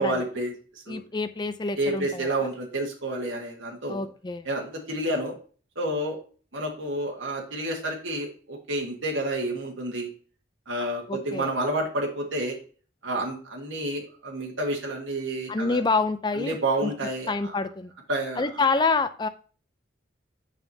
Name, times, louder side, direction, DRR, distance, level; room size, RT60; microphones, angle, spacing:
voice 1, 0.0-1.0 1.8-4.1 4.4-5.3 5.7-6.2 6.5-10.1 10.7-12.6 13.0-15.8 16.3-17.5 18.1-18.4, right 1 dB, 85° right, 0 dB, 1.5 m, -29 dB
voice 2, 0.9-2.3 3.9-4.5 11.1-11.5 15.5-16.6 16.8-16.9 17.3-17.9 18.4-19.3, left 4 dB, 20° left, 11 dB, 0.4 m, -27 dB
6.8 x 5.7 x 2.7 m, 0.40 s
head